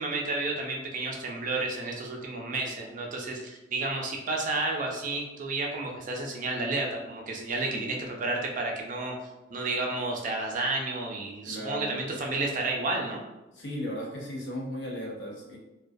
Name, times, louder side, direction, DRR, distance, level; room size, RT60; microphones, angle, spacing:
voice 1, 0.0-9.1 9.5-13.2, right 2 dB, 45° right, 0 dB, 0.4 m, -31 dB
voice 2, 7.6-8.0 11.4-12.3 13.5-15.6, equal, 65° left, -1 dB, 0.6 m, -37 dB
2.2 x 2.2 x 2.5 m, 1.0 s
head